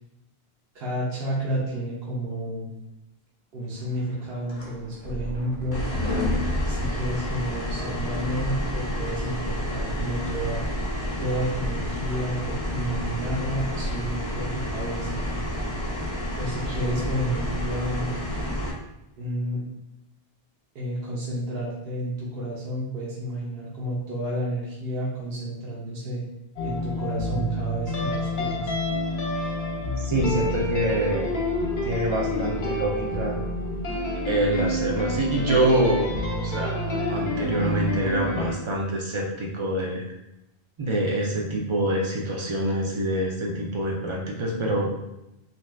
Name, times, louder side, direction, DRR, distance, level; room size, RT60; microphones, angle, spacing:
voice 1, 0.7-2.7 3.5-5.8 6.7-10.6 11.2-15.2 16.4-18.1 19.2-19.6 20.7-26.2 26.6-28.7, right 1 dB, 70° right, -6 dB, 0.9 m, -31 dB
sound 1, 4.0-7.7, left 2 dB, 20° left, 0.8 m, -31 dB
sound 2, 5.7-18.7, equal, 40° left, 0.3 m, -30 dB
sound 3, 26.6-38.5, left 1 dB, 55° left, 0.8 m, -28 dB
voice 2, 30.0-31.3 31.8-33.4 34.3-40.1 40.8-44.9, right 1 dB, 45° right, -2 dB, 0.4 m, -26 dB
2.7 x 2.3 x 3.2 m, 0.89 s
omnidirectional pair, 1.1 m